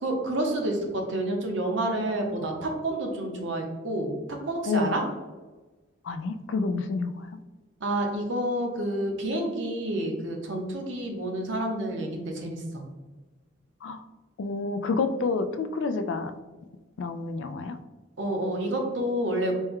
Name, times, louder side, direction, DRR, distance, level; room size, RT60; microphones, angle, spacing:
voice 1, 0.0-4.1 4.4-5.0 7.8-12.8 18.2-19.5, right 1 dB, 65° right, 2 dB, 0.8 m, -29 dB
voice 2, 6.1-7.1 13.8-14.0 14.4-16.3 17.0-17.8, left 3 dB, 65° left, 10 dB, 0.3 m, -28 dB
4.3 x 2.2 x 3.6 m, 1.2 s
head